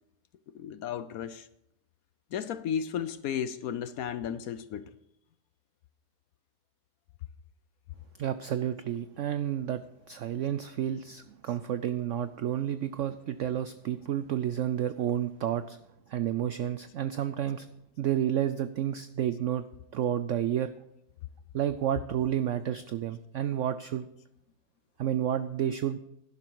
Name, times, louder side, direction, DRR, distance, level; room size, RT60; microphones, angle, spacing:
voice 1, 0.5-1.5 2.3-4.9, left 8 dB, 70° left, 0.9 m, -34 dB
voice 2, 8.2-9.8 10.1-15.8 16.1-17.7 18.0-19.6 19.9-20.7 21.5-24.1 25.0-26.0, right 10 dB, 90° right, 0.6 m, -30 dB
11.5 x 11.5 x 4.6 m
omnidirectional pair, 1.9 m